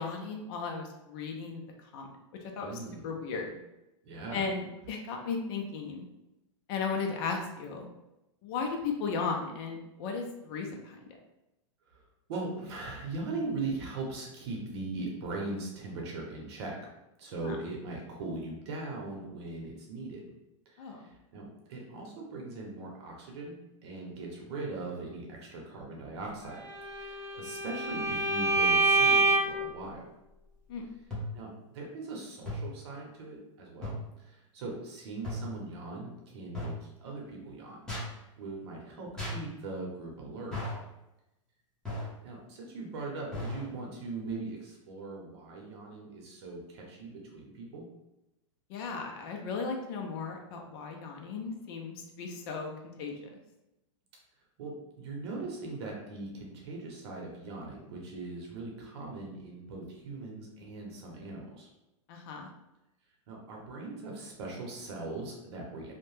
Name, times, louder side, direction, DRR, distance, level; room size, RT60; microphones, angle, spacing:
voice 1, 0.0-1.6 1.9-2.1 2.6-2.8 3.0-3.6 4.3-6.0 6.7-7.9 8.4-11.0 17.4-17.6 20.8-21.0 30.7-30.9 48.7-52.7 53.0-53.2 62.1-62.5, left 5 dB, 50° left, 2 dB, 0.5 m, -35 dB
voice 2, 2.6-3.1 4.0-4.5 11.9-12.0 12.3-16.8 17.2-20.3 20.7-30.0 31.3-37.8 38.4-40.6 42.2-47.9 54.6-61.7 63.3-65.9, right 3 dB, 55° right, -1 dB, 0.8 m, -40 dB
Bowed string instrument, 26.6-29.7, right 3 dB, 15° right, 0.6 m, -26 dB
sound 1, 31.1-31.5 32.5-32.8 33.8-34.1 35.2-35.6 36.5-36.9 37.9-38.2 39.2-39.5 40.5-40.9 41.8-42.2 43.3-43.7, left 1 dB, 5° left, 0.9 m, -36 dB
2.7 x 2.1 x 3.1 m, 0.92 s
hypercardioid pair, 140°, 16 cm